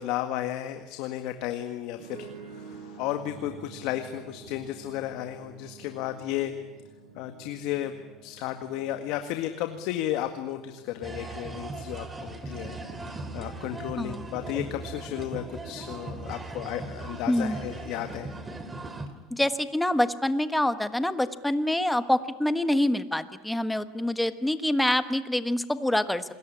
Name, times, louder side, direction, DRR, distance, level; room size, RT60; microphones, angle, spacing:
voice 1, 0.0-6.5 7.1-18.3, left 12 dB, 70° left, 7 dB, 1.8 m, -34 dB
sound 1, 2.0-12.0, right 5 dB, 70° right, 5.9 m, -49 dB
sound 2, 11.0-19.1, right 2 dB, 15° right, 3.1 m, -38 dB
voice 2, 14.0-14.3 17.3-17.6 19.3-26.2, left 1 dB, 5° left, 11 dB, 1.3 m, -26 dB
27.0 x 21.5 x 10.0 m, 1.1 s
cardioid pair, 130°, 0 cm